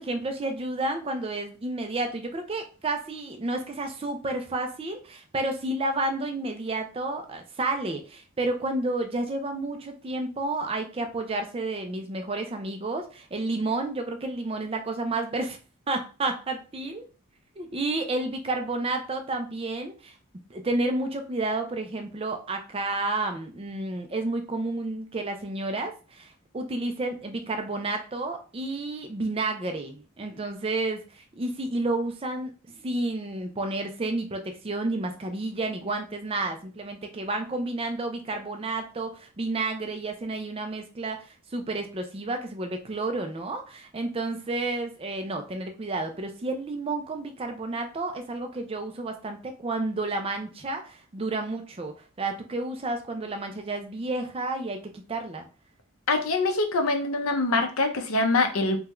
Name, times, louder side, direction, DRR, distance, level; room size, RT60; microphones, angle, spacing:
voice 1, 0.0-15.6 15.9-17.0 17.6-20.1 20.5-55.5, right 2 dB, 25° right, 5 dB, 0.4 m, -31 dB
voice 2, 56.1-58.8, left 3 dB, 75° left, 5 dB, 0.6 m, -24 dB
3.5 x 2.3 x 3.0 m, 0.34 s
head